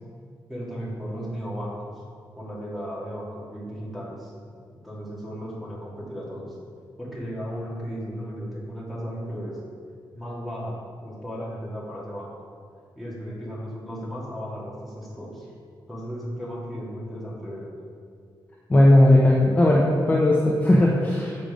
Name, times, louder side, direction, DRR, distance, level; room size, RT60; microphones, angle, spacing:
voice 1, 0.5-2.0 2.4-4.3 4.7-6.6 7.0-9.6 10.1-12.3 13.0-15.5 15.9-17.7, equal, ahead, -6 dB, 1.9 m, -35 dB
voice 2, 18.7-21.4, left 1 dB, 20° left, -3 dB, 0.7 m, -17 dB
7.6 x 5.3 x 5.1 m, 2.2 s
wide cardioid pair, 155°, 8 cm